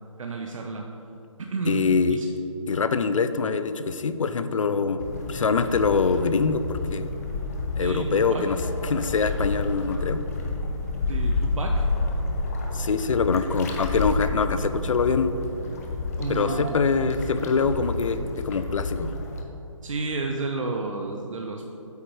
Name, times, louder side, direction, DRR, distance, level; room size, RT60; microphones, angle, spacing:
voice 1, 0.2-0.9 1.4-1.8 2.1-2.3 7.8-8.5 11.1-11.9 16.2-16.8 19.8-21.8, right 3 dB, 70° right, 2 dB, 0.6 m, -31 dB
voice 2, 1.7-2.2 2.7-5.0 5.3-7.1 7.8-10.2 12.7-15.3 16.3-19.1, left 5 dB, 70° left, 11 dB, 0.5 m, -24 dB
sound 1, 5.0-19.4, left 2 dB, 30° left, 0.7 m, -30 dB
8.2 x 4.6 x 4.6 m, 2.9 s
hypercardioid pair, 160°, 17 cm